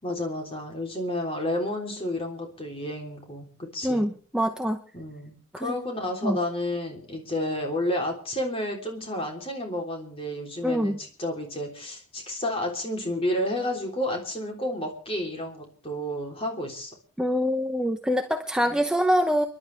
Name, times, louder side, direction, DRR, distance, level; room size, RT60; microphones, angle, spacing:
voice 1, 0.0-4.1 4.9-16.9 18.7-18.8, left 1 dB, 25° left, 2 dB, 3.5 m, -31 dB
voice 2, 3.8-4.8 5.5-5.7 6.2-6.4 10.6-11.0 17.2-19.5, equal, 5° right, 5 dB, 0.7 m, -25 dB
29.5 x 11.5 x 3.4 m, 0.40 s
head